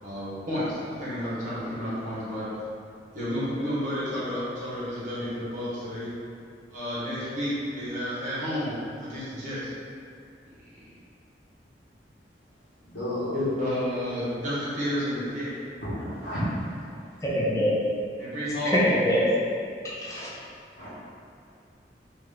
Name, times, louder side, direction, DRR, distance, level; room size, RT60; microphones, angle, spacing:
voice 1, 0.0-2.5 3.1-6.1 6.7-9.7 10.6-10.9 13.3-15.5 18.2-18.8, equal, 45° right, -9 dB, 1.3 m, -31 dB
voice 2, 12.8-13.3 15.8-17.0 20.8-20.9, equal, 85° left, -10 dB, 1.4 m, -32 dB
voice 3, 17.2-17.8 18.6-19.3 19.8-20.3, equal, 20° left, -7 dB, 0.6 m, -24 dB
3.1 x 3.0 x 3.8 m, 2.3 s
head